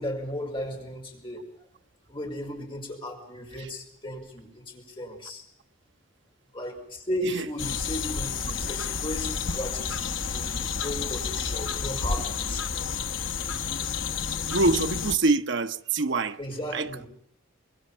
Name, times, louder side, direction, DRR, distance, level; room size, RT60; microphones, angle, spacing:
voice 1, 0.0-1.6 2.1-5.4 6.5-13.2 16.4-17.1, left 1 dB, 25° left, 5.3 m, -35 dB
sound 1, 7.6-15.2, left 5 dB, 60° left, 1.1 m, -30 dB
voice 2, 14.5-16.4 16.7-17.1, right 3 dB, 60° right, 1.0 m, -25 dB
25.0 x 21.5 x 5.7 m
head